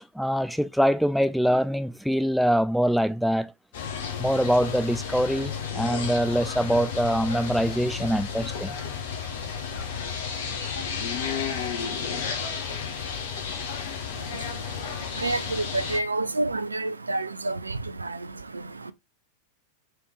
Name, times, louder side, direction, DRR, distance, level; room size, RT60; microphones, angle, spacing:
voice 1, 0.0-3.5 4.2-8.7, equal, ahead, 0.3 m, -24 dB
sound 1, 3.7-16.0, left 6 dB, 55° left, 1.0 m, -32 dB
voice 2, 14.2-18.9, right 2 dB, 80° right, 0.4 m, -30 dB
4.7 x 3.3 x 3.2 m
figure-of-eight pair, 90°, 0 cm